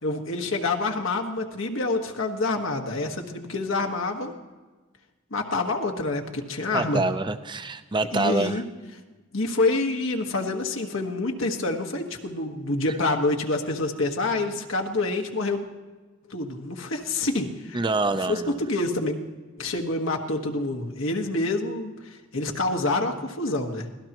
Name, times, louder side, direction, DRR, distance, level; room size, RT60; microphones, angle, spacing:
voice 1, 0.0-4.3 5.3-7.0 8.1-8.6 9.3-15.6 16.3-17.8 18.3-19.2 19.6-23.9, left 2 dB, 85° left, 2 dB, 1.5 m, -27 dB
voice 2, 6.7-8.6 17.7-18.6, right 3 dB, 25° right, 10 dB, 0.6 m, -26 dB
24.5 x 17.5 x 3.0 m, 1.3 s
head